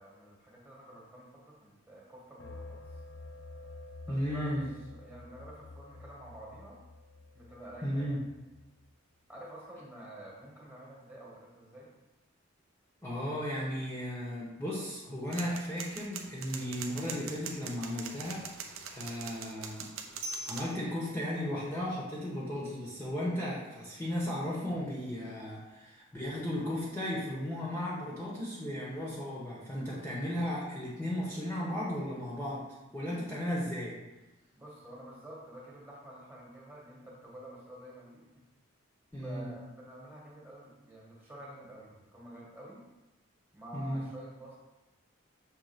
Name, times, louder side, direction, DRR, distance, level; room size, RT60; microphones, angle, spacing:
voice 1, 0.0-2.8 4.1-6.8 7.3-8.3 9.3-11.9 34.5-38.4 39.2-42.9 43.5-44.6, right 1 dB, 10° right, -4 dB, 1.5 m, -49 dB
sound 1, 2.4-8.9, left 2 dB, 65° left, 0.5 m, -50 dB
voice 2, 4.1-4.7 7.8-8.2 13.0-19.9 20.4-32.6 32.9-33.9 39.1-39.5 43.7-44.1, equal, 10° left, -6 dB, 1.1 m, -35 dB
sound 2, 15.3-20.8, right 5 dB, 80° right, 0.7 m, -42 dB
6.5 x 3.5 x 5.1 m, 1.0 s
head